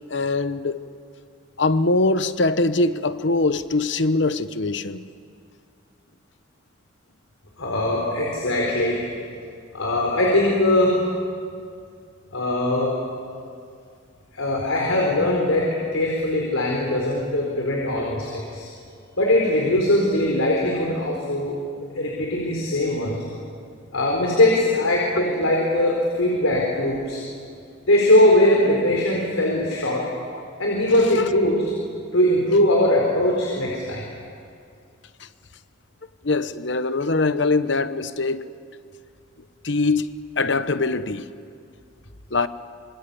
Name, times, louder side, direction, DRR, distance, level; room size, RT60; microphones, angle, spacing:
voice 1, 0.1-0.9 1.6-5.0 31.1-31.3 36.2-38.5 39.6-41.3 42.3-42.5, left 3 dB, 60° left, 1.0 m, -22 dB
voice 2, 7.6-9.0 9.7-10.9 12.3-12.9 14.3-18.7 19.2-21.5 21.9-23.2 23.9-27.2 27.9-30.0 30.6-31.6 32.1-34.0, left 1 dB, 85° left, 4.4 m, -21 dB
26.0 x 25.0 x 8.5 m
head